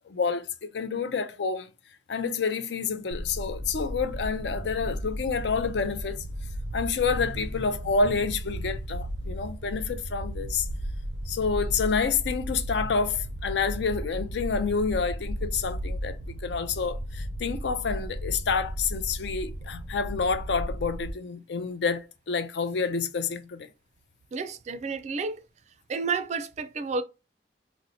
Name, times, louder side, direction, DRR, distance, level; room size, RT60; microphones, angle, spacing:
voice 1, 0.1-0.5 0.7-1.7 2.1-6.2 6.7-10.7 11.3-23.7, left 5 dB, 75° left, 0.5 m, -28 dB
sound 1, 3.1-21.1, equal, 85° right, 0.6 m, -35 dB
voice 2, 24.3-25.4 25.9-27.0, right 4 dB, 40° right, 0.3 m, -31 dB
4.0 x 2.1 x 2.7 m
head